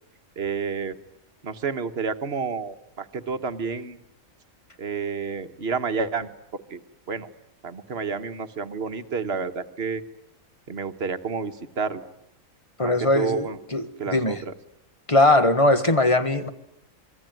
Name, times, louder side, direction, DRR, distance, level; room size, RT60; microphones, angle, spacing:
voice 1, 0.4-0.9 1.4-4.0 4.8-6.3 6.7-6.8 7.1-7.3 7.6-10.0 10.7-12.1 12.8-13.6 14.0-14.5, right 5 dB, 50° right, 1.5 m, -30 dB
voice 2, 12.8-14.4 15.1-16.5, left 2 dB, 25° left, 1.4 m, -20 dB
26.5 x 22.0 x 9.2 m
omnidirectional pair, 1.4 m